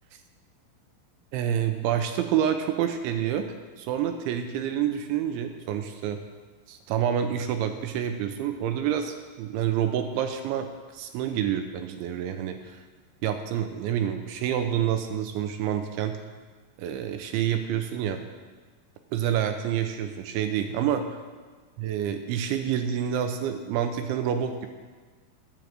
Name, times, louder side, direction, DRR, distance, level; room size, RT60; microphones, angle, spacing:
voice 1, 1.3-3.5 3.8-6.2 6.7-10.7 10.9-12.8 13.2-16.2 16.8-18.2 19.1-21.1 21.8-24.7, right 9 dB, 80° right, 6 dB, 2.9 m, -28 dB
10.0 x 9.6 x 7.6 m, 1.4 s
omnidirectional pair, 5.7 m